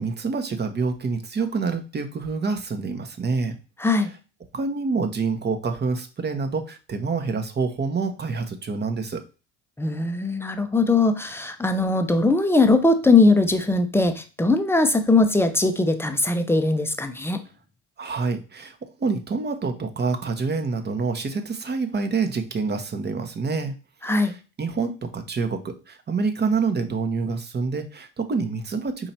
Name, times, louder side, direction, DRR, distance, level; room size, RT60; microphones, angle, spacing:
voice 1, 0.0-3.5 4.5-9.2 18.0-23.7 24.0-29.1, right 4 dB, 25° right, 7 dB, 0.9 m, -27 dB
voice 2, 3.8-4.1 9.8-17.4 24.0-24.3, left 3 dB, 5° left, 7 dB, 0.6 m, -20 dB
4.3 x 2.8 x 4.3 m, 0.33 s
hypercardioid pair, 75°, 38 cm